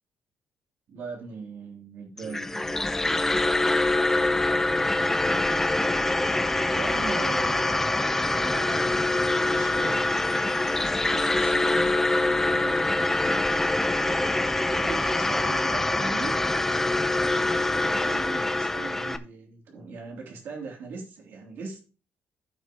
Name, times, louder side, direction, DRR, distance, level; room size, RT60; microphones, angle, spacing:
voice 1, 0.9-2.9 6.7-8.0 8.4-10.1 10.8-13.0 14.0-14.3 14.7-16.3 17.2-21.8, right 4 dB, 60° right, 0 dB, 3.0 m, -39 dB
sound 1, 2.2-19.2, left 2 dB, 10° left, 0.6 m, -24 dB
15.0 x 5.8 x 3.0 m, 0.35 s
cardioid pair, 165°, 4 cm